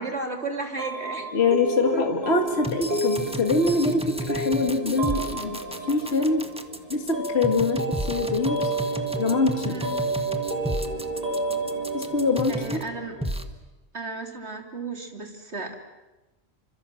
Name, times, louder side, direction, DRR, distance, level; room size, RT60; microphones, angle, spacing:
voice 1, 0.0-1.3 1.9-2.0 9.7-9.9 12.5-13.2 13.9-15.7, right 3 dB, 55° right, 4 dB, 3.4 m, -33 dB
sound 1, 0.8-13.4, right 2 dB, 30° right, 5.3 m, -31 dB
voice 2, 1.3-5.6 5.9-6.5 6.9-8.7 9.2-9.8 11.9-12.8, left 3 dB, 50° left, 5 dB, 2.0 m, -24 dB
sound 2, 2.5-12.9 13.2-13.4, equal, 5° right, 1.5 m, -32 dB
28.0 x 26.0 x 7.7 m, 1.1 s
omnidirectional pair, 1.4 m